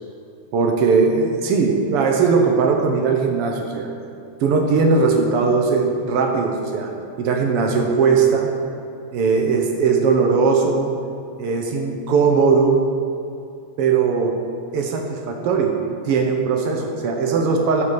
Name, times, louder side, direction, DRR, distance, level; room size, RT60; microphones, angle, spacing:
voice 1, 0.5-3.9 4.4-6.9 7.2-8.5 9.1-10.9 11.4-12.8 13.8-14.4 14.7-15.8 16.0-17.8, right 5 dB, 70° right, 2 dB, 1.5 m, -19 dB
11.0 x 4.6 x 6.4 m, 2.6 s
omnidirectional pair, 3.3 m